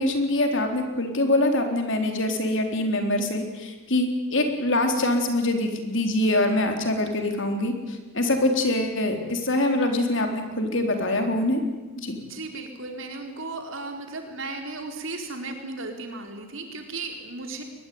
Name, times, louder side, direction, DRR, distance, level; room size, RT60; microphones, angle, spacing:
voice 1, 0.0-11.6 12.0-12.2, left 1 dB, 60° left, 4 dB, 3.9 m, -24 dB
voice 2, 12.2-17.6, right 3 dB, 65° right, 4 dB, 4.2 m, -35 dB
23.0 x 20.0 x 9.5 m, 1.2 s
head